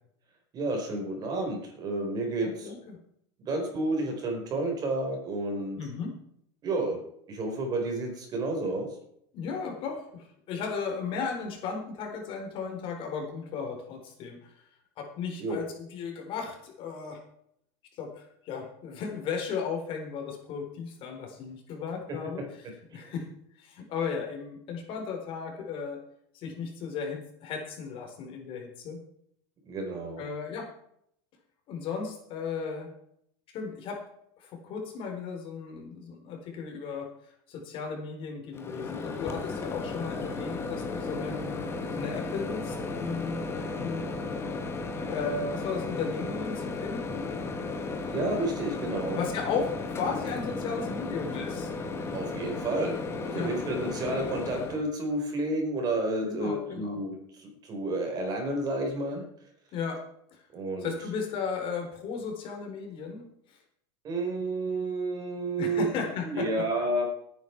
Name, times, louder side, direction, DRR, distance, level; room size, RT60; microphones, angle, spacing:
voice 1, 0.5-2.7 3.4-5.9 6.6-9.0 15.4-15.6 22.9-23.1 29.7-30.2 48.1-49.2 52.1-53.0 53.2-59.2 60.5-60.9 64.0-65.9 66.2-67.0, right 2 dB, 30° right, 3 dB, 4.7 m, -31 dB
voice 2, 2.4-3.0 5.8-6.1 9.3-14.7 15.0-17.2 17.9-22.4 22.9-23.3 23.6-26.0 26.3-29.0 30.2-30.7 31.7-32.9 33.5-34.0 34.4-41.5 41.9-44.1 45.1-47.3 47.5-47.6 49.1-51.7 53.3-53.5 56.2-57.0 59.7-60.0 60.3-60.4 60.8-63.6 65.6-66.6, left 5 dB, 40° left, 2 dB, 4.2 m, -35 dB
Microwave oven, 38.5-54.8, left 3 dB, 20° left, 2.0 m, -34 dB
18.0 x 9.5 x 4.7 m, 0.70 s
supercardioid pair, 150°, 14 cm